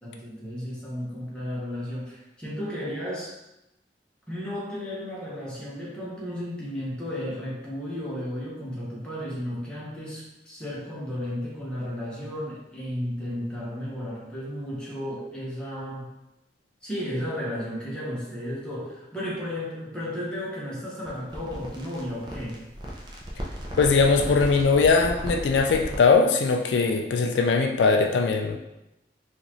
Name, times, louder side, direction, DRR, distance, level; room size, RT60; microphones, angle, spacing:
voice 1, 0.0-3.3 4.3-16.1 16.8-22.6, equal, 5° left, -7 dB, 0.9 m, -33 dB
sound 1, 21.1-26.1, equal, 25° right, 0.5 m, -36 dB
voice 2, 23.8-28.6, left 4 dB, 80° left, 3 dB, 0.3 m, -20 dB
3.9 x 2.5 x 3.0 m, 0.91 s
head